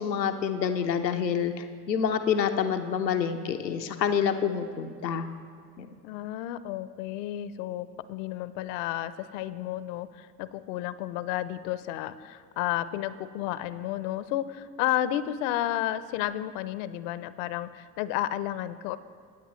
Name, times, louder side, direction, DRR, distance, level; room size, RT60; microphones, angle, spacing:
voice 1, 0.0-5.3 5.8-5.9, left 7 dB, 90° left, 7 dB, 0.7 m, -27 dB
voice 2, 6.0-19.0, left 13 dB, 55° left, 15 dB, 0.7 m, -32 dB
21.0 x 9.1 x 3.1 m, 2.2 s
figure-of-eight pair, 70°, 49 cm